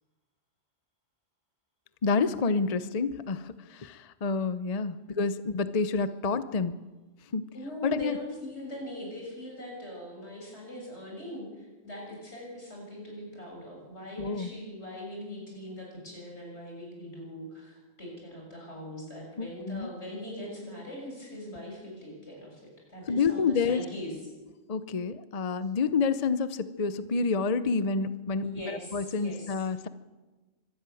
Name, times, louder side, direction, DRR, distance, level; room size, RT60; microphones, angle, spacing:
voice 1, 2.0-6.7 7.3-7.4 7.8-8.2 14.2-14.5 19.4-19.9 23.1-23.8 24.7-29.9, left 4 dB, 40° left, 13 dB, 0.7 m, -28 dB
voice 2, 7.5-24.2 28.4-29.6, left 1 dB, 90° left, -1 dB, 7.1 m, -41 dB
24.5 x 12.5 x 9.2 m, 1.2 s
omnidirectional pair, 1.1 m